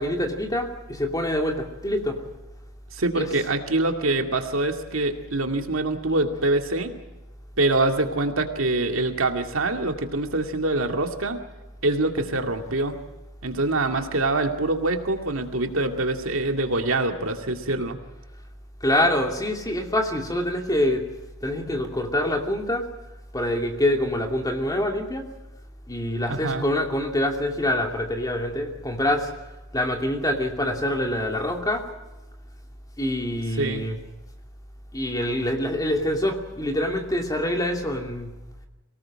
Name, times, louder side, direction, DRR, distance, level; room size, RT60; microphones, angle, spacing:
voice 1, 0.0-2.2 3.2-3.3 18.8-21.0 21.4-22.9 23.3-25.3 25.9-29.3 29.7-31.9 33.0-34.0 34.9-38.4, left 1 dB, 15° left, 3 dB, 2.6 m, -25 dB
voice 2, 2.9-6.9 7.6-11.4 11.8-12.9 13.4-18.0 26.3-26.7 33.6-33.8, right 2 dB, 65° right, 5 dB, 2.2 m, -25 dB
24.0 x 18.5 x 7.6 m, 1.1 s
head